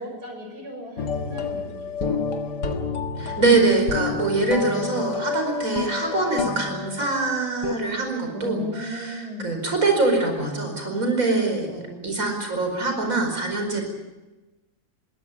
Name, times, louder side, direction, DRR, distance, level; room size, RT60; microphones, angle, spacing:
voice 1, 0.0-2.7 4.6-4.9 8.3-9.5 11.7-12.1, left 2 dB, 75° right, 3 dB, 6.4 m, -37 dB
sound 1, 1.0-7.8, left 5 dB, 90° left, 2.2 m, -29 dB
voice 2, 3.2-11.7 12.0-13.8, right 3 dB, 55° right, 4 dB, 5.3 m, -24 dB
22.0 x 18.0 x 8.7 m, 1.1 s
omnidirectional pair, 1.7 m